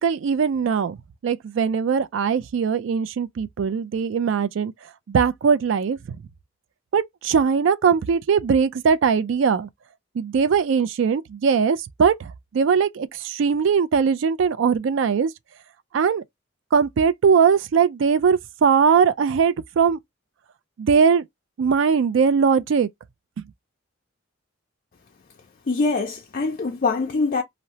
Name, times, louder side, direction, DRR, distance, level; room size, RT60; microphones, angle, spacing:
voice 1, 0.0-1.0 1.2-4.7 5.1-6.0 6.9-9.7 10.2-15.3 15.9-16.2 16.7-20.0 20.8-21.2 21.6-22.9, right 6 dB, 65° right, 0.3 m, -20 dB
voice 2, 25.7-27.4, left 3 dB, 40° left, 0.4 m, -23 dB
2.7 x 2.0 x 2.9 m
head